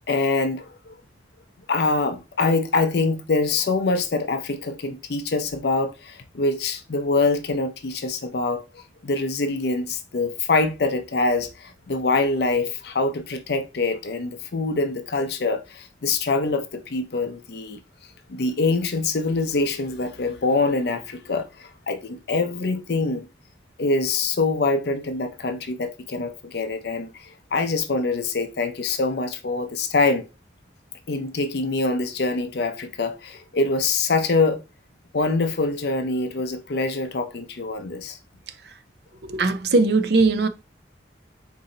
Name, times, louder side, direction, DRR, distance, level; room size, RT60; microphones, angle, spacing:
voice 1, 0.1-0.9 1.7-17.8 18.3-23.3 23.8-30.3 31.1-34.6 35.1-38.2, left 3 dB, 60° left, 0.5 m, -24 dB
voice 2, 39.2-40.5, right 3 dB, 60° right, 0.5 m, -19 dB
4.1 x 2.7 x 3.8 m
head